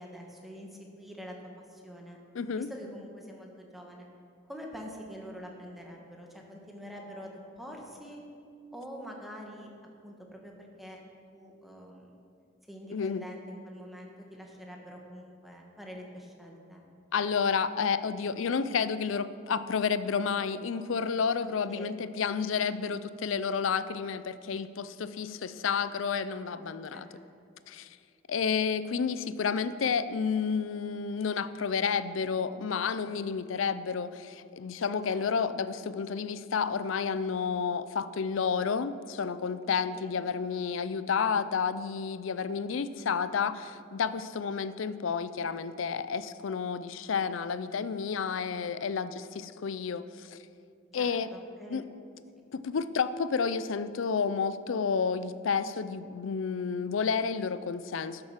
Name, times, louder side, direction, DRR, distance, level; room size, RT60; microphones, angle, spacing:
voice 1, 0.0-1.3 1.7-2.2 2.6-4.1 4.5-8.2 8.7-9.7 10.0-11.0 11.3-12.1 12.7-16.8 21.4-22.0 22.6-22.9 26.9-27.2 35.1-35.2 39.9-40.2 50.9-51.9, equal, ahead, 0 dB, 1.4 m, -45 dB
voice 2, 2.3-2.7 12.9-13.2 17.1-27.1 27.7-27.9 28.3-50.4 50.9-51.3 51.7-51.9 52.5-58.2, left 6 dB, 70° left, 14 dB, 0.5 m, -30 dB
12.0 x 7.6 x 5.8 m, 2.4 s
head